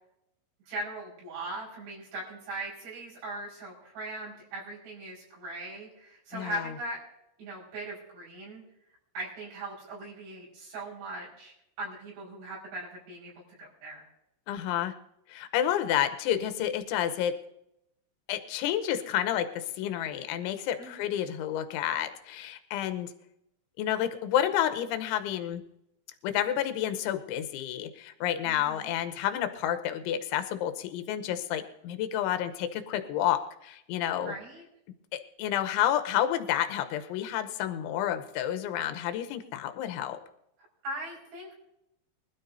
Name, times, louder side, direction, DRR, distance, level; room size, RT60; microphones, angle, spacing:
voice 1, 0.7-7.0 7.4-8.6 9.1-13.3 13.6-14.1 20.8-21.1 28.4-28.9 34.2-34.6 40.8-41.5, right 1 dB, 70° right, -5 dB, 7.6 m, -40 dB
voice 2, 6.3-6.7 14.5-14.9 15.3-17.3 18.3-23.1 23.8-25.6 26.2-34.3 35.1-40.2, left 11 dB, 80° left, 8 dB, 3.3 m, -30 dB
24.5 x 13.0 x 2.7 m, 0.81 s
omnidirectional pair, 5.5 m